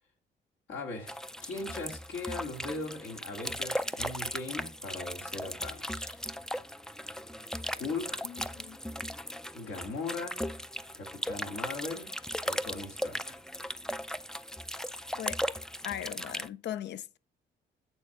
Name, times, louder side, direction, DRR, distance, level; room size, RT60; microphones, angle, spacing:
voice 1, 0.7-6.2 7.7-8.3 9.5-10.4 10.9-12.1 12.5-13.4, left 3 dB, 80° left, 2.5 m, -39 dB
sound 1, 1.1-16.5, equal, 5° left, 0.4 m, -37 dB
voice 2, 8.2-8.8 15.2-15.4 15.8-17.2, left 11 dB, 60° left, 0.5 m, -39 dB
8.8 x 3.6 x 5.8 m
cardioid pair, 90°, 20 cm